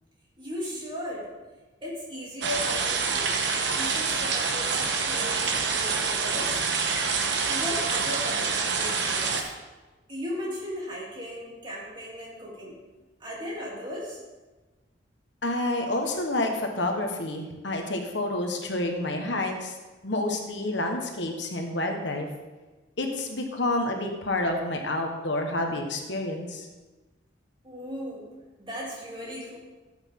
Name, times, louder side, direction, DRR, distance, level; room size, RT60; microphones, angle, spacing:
voice 1, 0.4-1.3 1.8-3.3 3.8-6.6 7.4-9.6 10.1-12.8 13.2-14.2 27.6-28.3 28.6-29.6, left 1 dB, 25° right, -5 dB, 3.1 m, -36 dB
sound 1, 2.4-9.4, right 5 dB, 65° right, 1.1 m, -26 dB
voice 2, 15.4-19.7 20.0-22.3 23.0-26.7, left 2 dB, 70° left, 3 dB, 1.3 m, -29 dB
13.5 x 8.1 x 3.7 m, 1.2 s
head